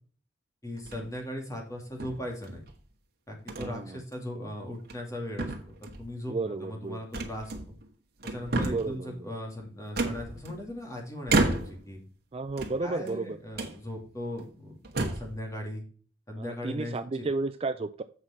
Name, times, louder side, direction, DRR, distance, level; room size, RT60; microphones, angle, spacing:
voice 1, 0.6-2.6 3.3-7.7 8.2-12.0 12.8-15.8 16.3-17.3, left 1 dB, 20° left, 0 dB, 2.6 m, -38 dB
sound 1, 0.8-1.2 2.0-2.7 3.5-3.7 4.1-4.3 4.8-5.1 5.4-6.1 7.1-7.9 8.2-9.0 10.0-10.8 11.3-11.9 12.5-13.2 13.5-13.8 14.4-14.5 14.8-15.4, right 2 dB, 55° right, 1.6 m, -31 dB
voice 2, 3.6-4.0 6.3-7.0 8.7-9.3 12.3-13.4 16.4-18.0, right 3 dB, 30° right, 11 dB, 0.4 m, -33 dB
8.0 x 5.8 x 4.5 m, 0.42 s
head